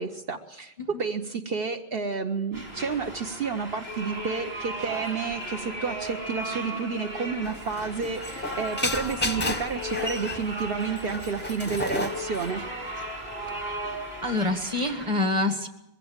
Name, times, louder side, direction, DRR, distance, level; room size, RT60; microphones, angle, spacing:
voice 1, 0.0-12.6, right 5 dB, 65° right, 5 dB, 1.1 m, -30 dB
sound 1, 2.5-15.1, right 1 dB, 90° right, 6.0 m, -36 dB
sound 2, 7.4-14.3, left 2 dB, 10° left, 0.7 m, -33 dB
voice 2, 14.2-15.7, left 2 dB, 30° right, 7 dB, 1.8 m, -27 dB
21.5 x 16.0 x 8.8 m, 0.91 s
omnidirectional pair, 1.0 m